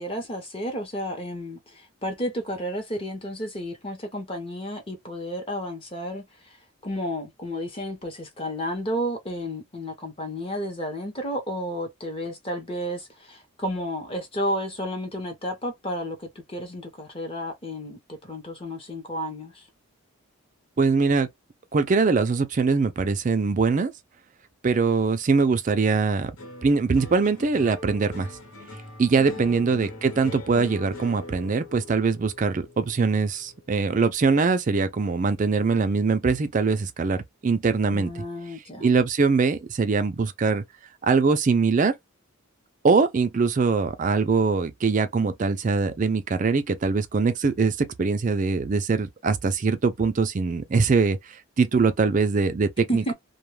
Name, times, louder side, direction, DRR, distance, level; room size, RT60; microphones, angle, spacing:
voice 1, 0.0-6.2 6.8-19.6 29.2-29.7 37.9-38.9 52.9-53.1, equal, 25° left, 0.7 m, -32 dB
voice 2, 20.8-21.3 21.7-23.9 24.6-26.3 26.6-28.3 29.0-38.1 38.8-40.6 41.0-41.9 42.8-53.1, right 4 dB, 35° right, 0.3 m, -22 dB
sound 1, 26.4-34.8 35.1-35.8, left 2 dB, 70° left, 1.0 m, -42 dB
2.2 x 2.2 x 3.1 m
head